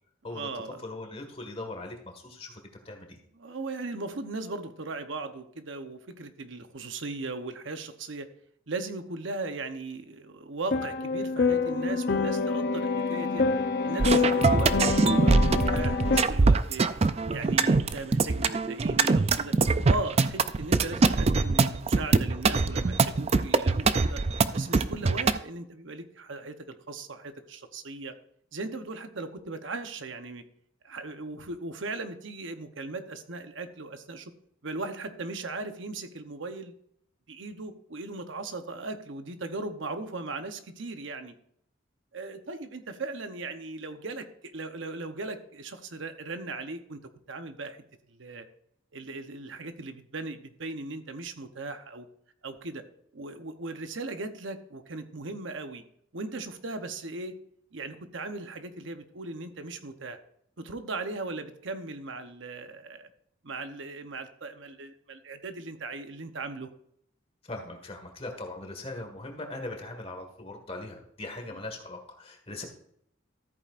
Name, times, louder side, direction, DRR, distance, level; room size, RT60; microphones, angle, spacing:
voice 1, 0.3-0.8 3.3-8.3 8.7-13.5 13.8-16.9 17.3-19.5 19.9-24.2 24.5-28.1 28.5-30.4 30.8-34.3 34.6-36.7 37.3-41.3 42.1-47.0 47.3-47.8 48.1-48.5 48.9-52.1 52.4-52.8 53.1-55.8 56.1-57.3 57.7-60.2 60.6-63.1 63.4-66.7 71.5-71.6, right 3 dB, 65° right, 8 dB, 0.9 m, -38 dB
voice 2, 0.8-2.6 2.8-3.2 67.5-72.7, left 2 dB, 30° left, 4 dB, 1.7 m, -40 dB
sound 1, 10.7-16.2, left 4 dB, 50° left, 0.7 m, -26 dB
sound 2, 14.0-25.4, right 4 dB, 30° right, 0.4 m, -23 dB
13.5 x 8.7 x 2.5 m, 0.68 s
head